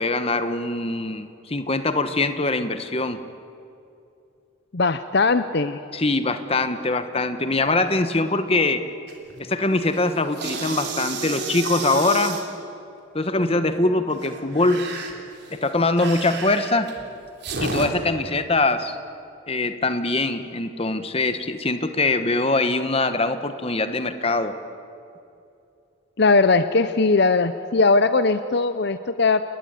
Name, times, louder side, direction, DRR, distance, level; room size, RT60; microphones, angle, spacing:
voice 1, 0.0-3.2 5.9-8.8 9.4-12.4 13.1-14.9 15.5-16.9 17.6-19.0 19.5-24.6, left 2 dB, 30° left, 10 dB, 1.3 m, -23 dB
voice 2, 4.7-5.8 26.2-29.4, left 3 dB, 55° left, 11 dB, 0.7 m, -19 dB
sound 1, 9.1-9.4 9.8-12.4 14.1-17.9, right 3 dB, 55° right, 3.7 m, -32 dB
29.0 x 20.0 x 9.7 m, 2.7 s
head